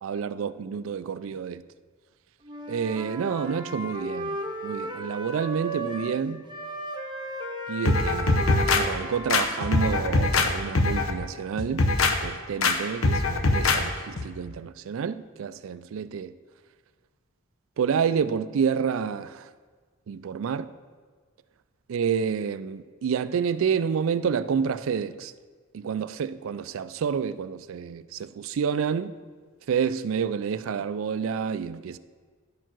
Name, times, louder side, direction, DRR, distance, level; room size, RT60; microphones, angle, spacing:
voice 1, 0.0-1.6 2.7-4.4 4.6-6.4 7.7-8.4 8.7-11.9 12.2-16.3 17.8-19.4 20.1-20.7 21.9-25.3 25.7-29.1 29.7-32.0, right 6 dB, 70° right, 0.4 m, -29 dB
Wind instrument woodwind instrument, 2.4-6.2 6.5-10.3, right 1 dB, 20° right, 0.9 m, -35 dB
sound 1, 7.9-8.8 9.3-10.5 10.7-11.1 11.6-12.1 12.6-12.7 13.0-13.8 14.2-14.3, left 3 dB, 75° left, 0.8 m, -22 dB
11.0 x 4.5 x 6.1 m
head